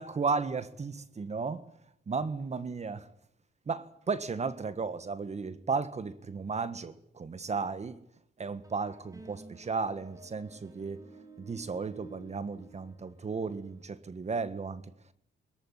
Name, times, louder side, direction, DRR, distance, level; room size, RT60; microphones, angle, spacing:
voice 1, 0.0-1.7 2.1-3.1 3.7-8.0 8.4-11.0 11.4-14.8, right 4 dB, 35° right, 1.6 m, -34 dB
sound 1, 8.6-13.8, right 3 dB, 15° right, 4.3 m, -53 dB
23.5 x 14.5 x 10.0 m
cardioid pair, 90°, 20 cm